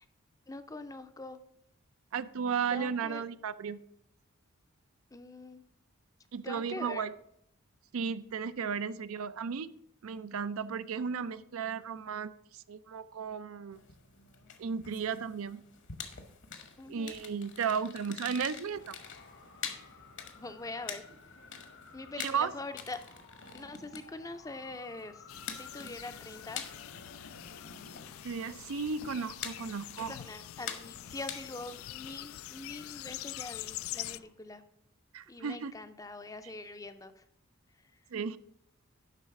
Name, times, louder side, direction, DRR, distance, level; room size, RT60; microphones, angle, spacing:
voice 1, 0.5-1.4 2.7-3.2 5.1-5.6 6.4-7.1 16.8-17.1 20.4-21.0 21.9-23.0 23.5-25.2 25.5-26.6 30.1-34.6 35.3-37.2, left 2 dB, 15° left, 10 dB, 0.5 m, -43 dB
voice 2, 2.1-3.8 6.3-7.2 7.9-9.7 10.0-13.8 14.6-15.6 16.9-19.0 22.2-22.5 28.2-30.2 35.1-35.7 38.1-38.4, right 6 dB, 75° right, 14 dB, 0.4 m, -34 dB
sound 1, 13.7-31.8, left 7 dB, 55° left, 1.1 m, -46 dB
Traffic noise roadway noise, 18.7-34.2, left 3 dB, 90° left, 2.8 m, -57 dB
sound 2, 25.3-34.2, left 14 dB, 75° left, 0.3 m, -45 dB
11.0 x 4.0 x 5.8 m, 0.74 s
head